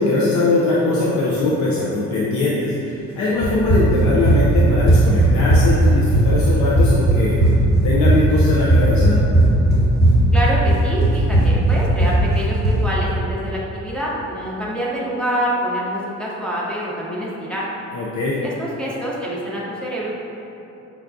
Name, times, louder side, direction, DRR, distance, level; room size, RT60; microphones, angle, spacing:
voice 1, 0.0-7.4 7.8-9.2 17.9-18.4, left 2 dB, 70° left, -6 dB, 0.6 m, -21 dB
Run, 3.4-12.8, right 1 dB, 45° left, 1.4 m, -15 dB
voice 2, 10.3-17.7 18.4-20.1, equal, 5° left, -7 dB, 0.6 m, -26 dB
5.9 x 2.2 x 2.5 m, 2.9 s
cardioid pair, 90°, 30 cm